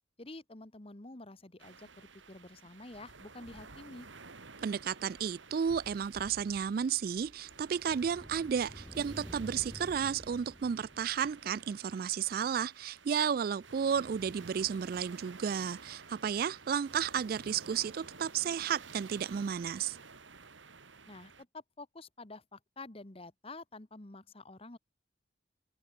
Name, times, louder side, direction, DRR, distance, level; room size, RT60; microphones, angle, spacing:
voice 1, 0.2-4.1 21.1-24.8, left 2 dB, 30° left, 1.3 m, -49 dB
sound 1, 1.6-21.4, right 4 dB, 90° right, 2.9 m, -53 dB
voice 2, 4.6-20.0, right 7 dB, 50° right, 0.3 m, -33 dB
sound 2, 6.3-11.6, equal, 10° right, 2.1 m, -50 dB
open air
head